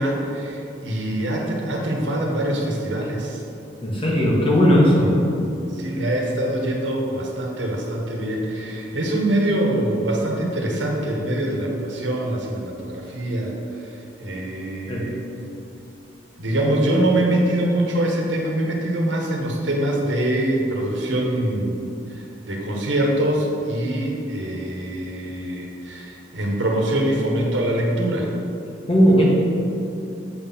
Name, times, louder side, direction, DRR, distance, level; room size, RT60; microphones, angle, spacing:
voice 1, 0.0-3.4 5.6-15.2 16.4-21.8 22.1-28.3, right 1 dB, 90° right, -1 dB, 1.4 m, -24 dB
voice 2, 3.8-5.1 14.9-15.1 28.9-29.3, equal, 30° left, -4 dB, 1.6 m, -17 dB
8.0 x 4.3 x 5.6 m, 2.8 s
head